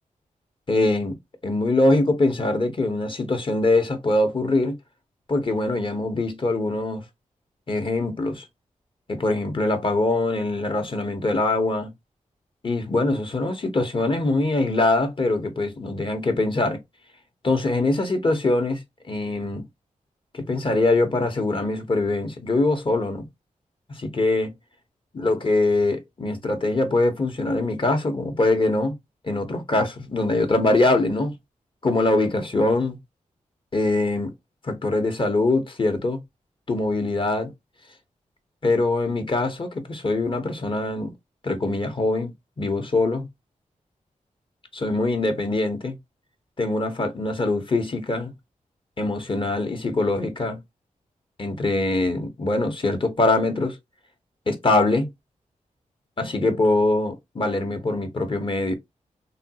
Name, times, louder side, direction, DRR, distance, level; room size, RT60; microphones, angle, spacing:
voice 1, 0.7-1.2 1.4-4.8 5.3-7.0 7.7-8.4 9.1-11.9 12.6-16.8 17.4-18.8 19.1-19.6 20.3-23.3 23.9-24.5 25.1-29.0 29.2-31.3 31.8-33.0 33.7-34.3 34.6-36.2 36.7-37.5 38.6-41.1 41.4-42.3 42.6-43.2 44.7-46.0 46.6-48.3 49.0-50.6 51.4-53.8 54.5-55.1 56.2-58.7, left 2 dB, 40° left, 0.9 m, -23 dB
3.3 x 2.3 x 2.8 m
cardioid pair, 75°, 14 cm